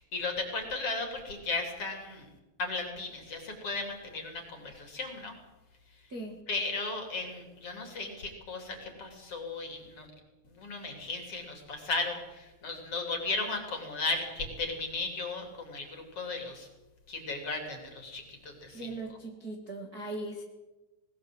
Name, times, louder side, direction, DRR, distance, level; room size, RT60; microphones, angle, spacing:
voice 1, 0.0-2.3 2.6-5.3 6.5-10.1 10.5-16.7 17.1-18.9, left 3 dB, 35° left, 3 dB, 3.8 m, -35 dB
voice 2, 6.1-6.4 18.7-20.4, right 2 dB, 50° right, 2 dB, 1.0 m, -39 dB
19.5 x 19.5 x 8.0 m, 1.1 s
omnidirectional pair, 5.5 m